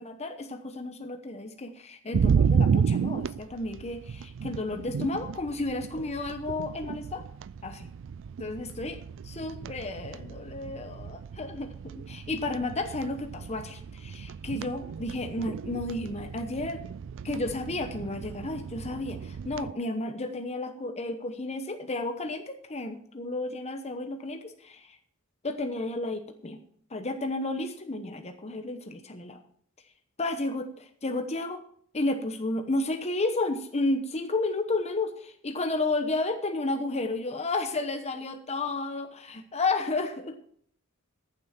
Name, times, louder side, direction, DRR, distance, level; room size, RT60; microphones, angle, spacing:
voice 1, 0.0-7.2 7.6-7.9 8.4-9.0 9.2-16.8 17.2-25.0 25.4-26.6 26.9-29.4 30.2-31.6 31.9-40.3, left 2 dB, 30° left, 6 dB, 1.0 m, -32 dB
sound 1, 2.1-19.7, right 6 dB, 60° right, 0.4 m, -32 dB
14.0 x 7.6 x 5.8 m, 0.62 s
head